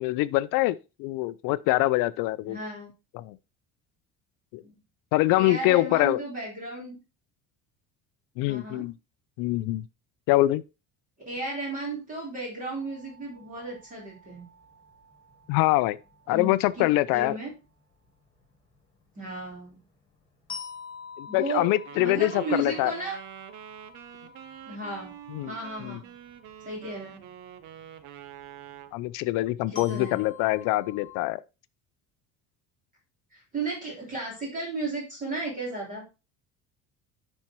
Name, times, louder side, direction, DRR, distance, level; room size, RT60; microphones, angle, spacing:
voice 1, 0.0-2.6 3.1-3.3 4.5-4.6 5.1-6.2 8.4-8.9 9.4-9.8 10.3-10.6 15.5-16.0 16.3-17.4 21.2-22.9 25.3-25.5 25.8-26.0 28.9-31.4, left 18 dB, 85° left, 0.6 m, -24 dB
voice 2, 2.4-2.9 4.6-4.8 5.4-7.0 8.5-8.9 11.3-14.4 16.3-17.5 19.2-19.8 21.3-23.2 24.7-25.1 25.5-26.1 26.6-27.3 29.7-30.2 33.3-36.0, right 2 dB, 25° right, 3.5 m, -34 dB
sound 1, 12.7-31.2, left 6 dB, 15° left, 2.5 m, -49 dB
Wind instrument woodwind instrument, 21.9-29.0, right 10 dB, 60° right, 1.0 m, -45 dB
10.5 x 4.5 x 4.4 m
cardioid pair, 175°, 32 cm